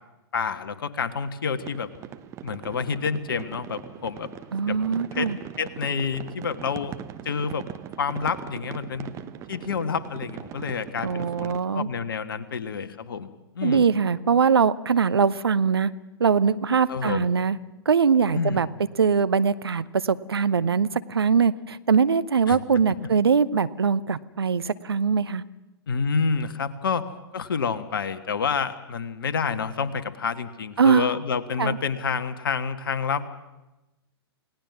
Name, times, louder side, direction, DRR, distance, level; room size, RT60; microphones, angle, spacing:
voice 1, 0.3-1.9 2.4-4.3 4.7-4.8 5.1-5.3 5.6-6.9 7.2-7.7 8.0-9.1 9.5-13.3 13.5-13.9 16.9-17.3 18.3-18.6 22.4-22.6 23.0-23.1 25.9-27.0 27.3-33.3, left 5 dB, 55° left, 11 dB, 1.5 m, -28 dB
sound 1, 1.6-11.6, right 10 dB, 20° right, 0.9 m, -40 dB
voice 2, 4.5-5.4 11.0-11.9 13.6-15.9 16.2-17.6 17.9-18.7 19.0-25.4 30.8-31.1 31.6-31.8, right 6 dB, 70° right, 14 dB, 0.8 m, -22 dB
28.5 x 18.0 x 6.1 m, 1.0 s
figure-of-eight pair, 115°, 14 cm